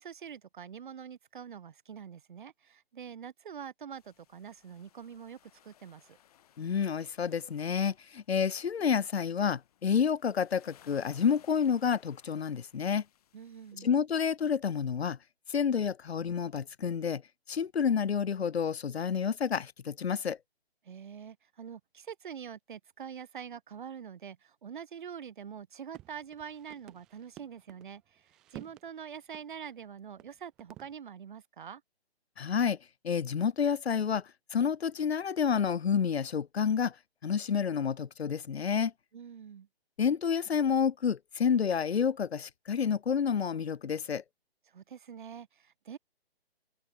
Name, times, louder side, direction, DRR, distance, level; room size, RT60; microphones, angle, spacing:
voice 1, 0.0-6.2 13.3-13.9 20.8-31.8 39.1-39.7 44.7-46.0, right 7 dB, 50° right, 1.7 m, -45 dB
sound 1, 3.9-13.7, left 11 dB, 35° left, 6.0 m, -63 dB
voice 2, 6.6-13.0 13.8-15.2 15.5-17.2 17.5-20.4 32.4-32.8 33.0-34.2 34.5-36.9 37.2-38.9 40.0-44.2, left 7 dB, 75° left, 0.9 m, -29 dB
sound 2, 25.9-27.9 28.2-28.9 29.3-29.4 29.8-29.9 30.2-30.3 30.6-30.9, right 15 dB, ahead, 0.4 m, -51 dB
hypercardioid pair, 155°, 31 cm